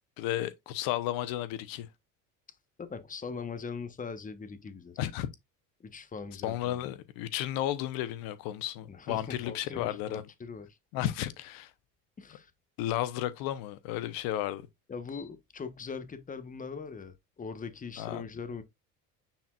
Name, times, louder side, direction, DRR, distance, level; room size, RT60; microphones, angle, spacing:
voice 1, 0.2-1.9 5.0-5.3 6.4-10.2 10.9-11.7 12.8-14.7 18.0-18.2, left 13 dB, 75° left, 0.9 m, -33 dB
voice 2, 2.8-5.0 5.8-6.9 8.9-10.7 12.2-12.5 14.9-18.6, left 5 dB, 20° left, 1.2 m, -41 dB
9.1 x 4.4 x 2.4 m
supercardioid pair, 100°, 36 cm